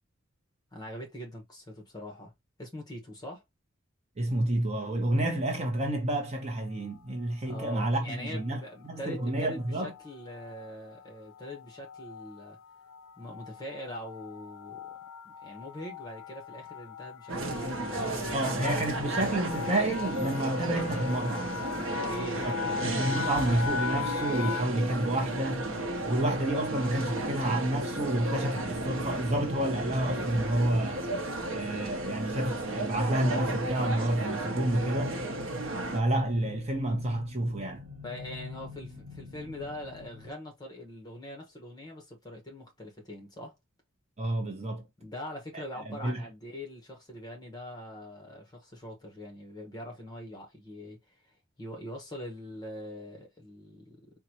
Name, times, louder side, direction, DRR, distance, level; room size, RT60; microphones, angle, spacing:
voice 1, 0.7-2.3 2.6-3.4 7.5-12.6 13.2-14.9 15.4-18.5 18.8-19.2 21.9-22.8 38.0-43.5 45.0-51.0 51.2-54.1, left 1 dB, 20° left, 1.1 m, -43 dB
voice 2, 4.2-9.9 18.3-21.6 22.4-22.5 22.8-25.7 26.1-31.0 31.5-35.3 35.9-37.9 44.2-44.8 45.9-46.2, right 1 dB, 30° right, 0.8 m, -29 dB
sound 1, 6.5-7.0 7.7-8.1 8.4-8.6 8.9-24.6, left 7 dB, 85° left, 0.3 m, -40 dB
sound 2, 17.3-36.0, right 2 dB, 70° right, 0.8 m, -34 dB
sound 3, 27.6-40.3, left 4 dB, 90° right, 1.2 m, -49 dB
3.9 x 2.3 x 2.9 m
head